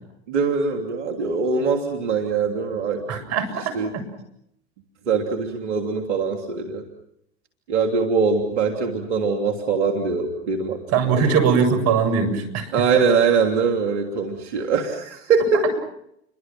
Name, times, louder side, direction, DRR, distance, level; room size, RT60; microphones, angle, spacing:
voice 1, 0.3-3.2 3.7-3.9 5.1-6.8 7.7-10.8 11.1-11.4 12.7-15.7, right 5 dB, 75° right, 3 dB, 3.3 m, -22 dB
voice 2, 3.1-4.0 10.9-12.7, right 6 dB, 45° right, 9 dB, 7.5 m, -21 dB
30.0 x 24.5 x 6.1 m, 0.78 s
hypercardioid pair, 95°, 35 cm